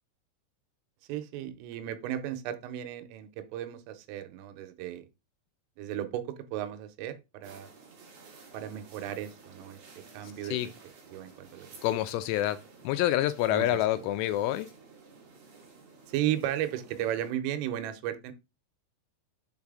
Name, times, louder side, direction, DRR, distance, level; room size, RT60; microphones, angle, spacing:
voice 1, 1.1-5.1 5.8-7.7 8.5-10.7 11.1-11.8 13.5-14.1 16.1-18.3, right 11 dB, 90° right, 3.3 m, -35 dB
sound 1, 7.4-17.3, right 4 dB, 60° right, 1.7 m, -53 dB
voice 2, 11.8-12.6 12.8-14.7, left 14 dB, 85° left, 2.8 m, -27 dB
7.2 x 4.0 x 3.6 m
omnidirectional pair, 5.8 m